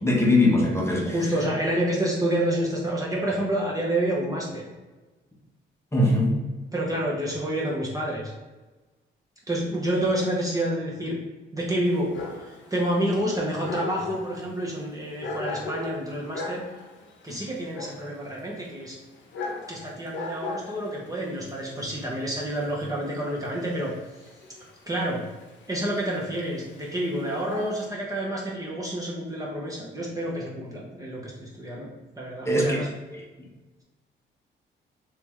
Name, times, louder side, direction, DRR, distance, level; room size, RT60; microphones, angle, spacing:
voice 1, 0.0-1.1 5.9-6.3 32.5-32.8, left 1 dB, 15° left, -2 dB, 0.9 m, -21 dB
voice 2, 1.0-4.6 6.7-8.3 9.5-11.2 11.5-12.1 12.4-16.6 17.2-19.0 19.7-23.9 24.9-25.2 25.7-32.9, right 1 dB, 20° right, -4 dB, 0.7 m, -28 dB
Dog, 11.8-27.9, left 3 dB, 70° left, 0.8 m, -39 dB
3.0 x 2.8 x 3.6 m, 1.2 s
cardioid pair, 90°, 20 cm